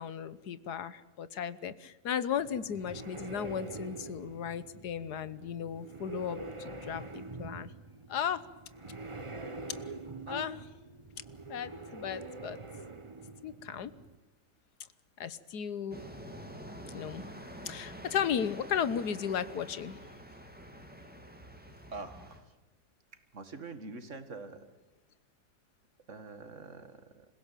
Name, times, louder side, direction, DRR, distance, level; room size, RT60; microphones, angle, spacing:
voice 1, 0.0-7.7 8.1-8.4 10.3-10.7 11.5-12.6 13.4-13.9 15.2-16.0 16.9-17.3 17.7-20.0, left 8 dB, 80° left, 16 dB, 1.6 m, -35 dB
sound 1, 2.4-14.2, right 2 dB, 20° right, 1.1 m, -45 dB
sound 2, 15.9-22.4, equal, 5° right, 2.6 m, -47 dB
voice 2, 21.9-22.5 23.3-24.6 26.1-27.3, right 3 dB, 50° right, 10 dB, 2.2 m, -45 dB
27.0 x 16.5 x 9.1 m, 1.1 s
omnidirectional pair, 1.7 m